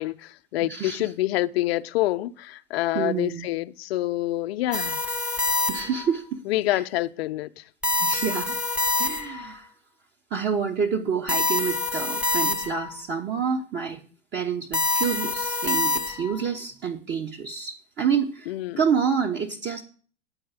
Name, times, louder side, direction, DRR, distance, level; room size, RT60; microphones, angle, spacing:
voice 1, 0.0-5.0 6.5-7.6 18.5-18.8, left 16 dB, 65° left, 0.6 m, -27 dB
voice 2, 0.7-1.1 2.9-3.5 5.7-6.4 6.7-6.8 8.0-8.6 9.0-9.7 10.3-14.0 14.3-19.8, right 6 dB, 30° right, 1.1 m, -28 dB
sound 1, 4.7-6.1 7.8-9.5 11.3-13.0 14.7-16.4, left 2 dB, 5° right, 0.8 m, -26 dB
9.6 x 4.7 x 7.8 m
hypercardioid pair, 95°, 33 cm